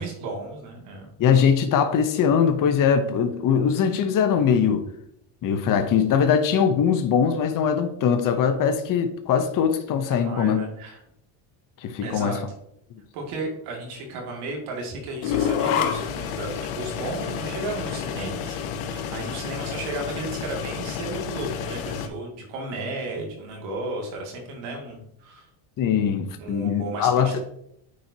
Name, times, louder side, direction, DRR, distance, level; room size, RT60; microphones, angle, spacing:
voice 1, 0.0-1.1 10.1-11.0 12.0-12.4 13.1-25.5 26.4-27.4, right 2 dB, 80° right, 0 dB, 2.4 m, -34 dB
voice 2, 1.2-4.8 5.4-10.6 11.8-12.3 25.8-27.4, left 7 dB, 40° left, 7 dB, 0.8 m, -21 dB
sound 1, 15.2-22.1, left 8 dB, 85° left, 0.9 m, -29 dB
9.3 x 4.4 x 2.8 m, 0.73 s
cardioid pair, 115°, 49 cm